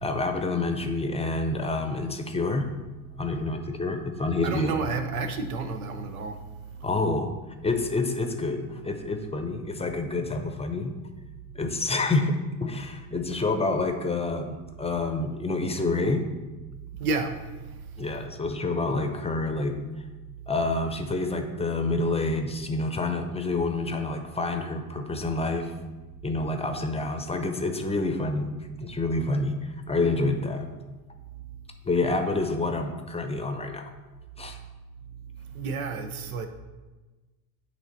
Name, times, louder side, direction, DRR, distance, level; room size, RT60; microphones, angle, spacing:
voice 1, 0.0-2.7 3.2-4.7 6.8-7.3 7.6-10.9 11.5-16.2 18.0-19.8 20.5-25.7 26.2-28.5 28.8-30.7 31.8-33.9 34.4-34.6, left 2 dB, 15° left, 0.6 m, -28 dB
voice 2, 4.4-6.9 17.0-17.8 35.5-36.5, right 4 dB, 85° right, 0.7 m, -31 dB
8.2 x 3.1 x 4.1 m
hypercardioid pair, 65°, 42 cm